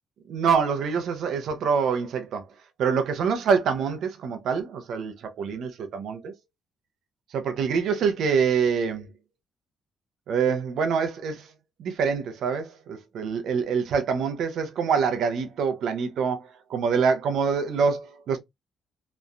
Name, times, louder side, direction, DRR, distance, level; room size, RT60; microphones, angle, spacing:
voice 1, 0.3-2.5 2.8-6.3 7.3-9.1 10.3-11.5 11.8-18.4, right 6 dB, 75° right, 0.7 m, -25 dB
3.1 x 2.2 x 2.5 m
cardioid pair, 90°, 0 cm